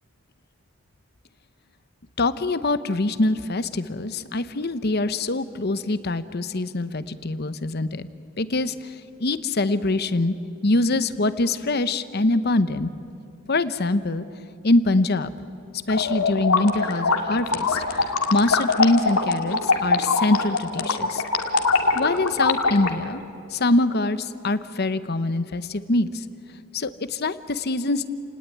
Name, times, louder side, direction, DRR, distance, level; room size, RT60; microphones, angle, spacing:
voice 1, 2.2-8.1 8.4-10.3 10.6-12.9 13.5-14.2 14.6-15.3 15.9-21.2 21.9-23.2 23.5-26.2 26.7-28.1, left 2 dB, 45° left, 13 dB, 0.9 m, -24 dB
sound 1, 15.9-22.9, left 4 dB, 85° left, 2.1 m, -23 dB
29.5 x 19.0 x 9.4 m, 2.6 s
head